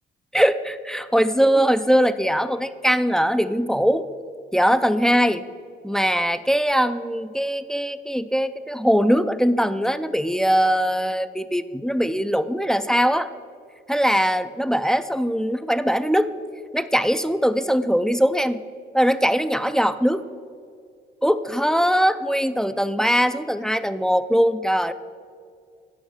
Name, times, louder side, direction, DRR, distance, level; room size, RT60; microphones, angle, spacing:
voice 1, 0.3-4.1 4.5-5.5 5.8-13.3 13.9-16.3 16.7-18.6 18.9-20.2 21.2-24.9, equal, 5° left, 12 dB, 0.4 m, -21 dB
10.5 x 6.3 x 6.1 m, 2.2 s
cardioid pair, 90°, 20 cm